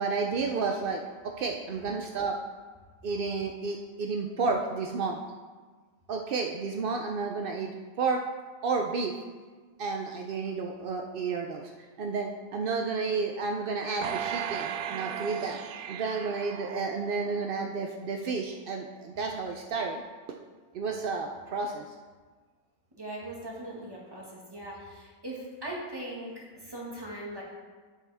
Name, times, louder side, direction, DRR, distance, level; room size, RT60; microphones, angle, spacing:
voice 1, 0.0-2.4 3.0-5.2 6.1-7.7 8.0-8.2 8.6-9.1 9.8-11.7 12.0-15.6 15.9-20.0 20.7-21.8, right 4 dB, 65° right, 3 dB, 0.5 m, -31 dB
sound 1, 14.0-17.5 17.9-18.0, right 9 dB, 85° right, 1.1 m, -36 dB
voice 2, 23.0-27.4, right 1 dB, 15° right, -4 dB, 1.8 m, -40 dB
9.7 x 7.4 x 3.5 m, 1.4 s
omnidirectional pair, 1.6 m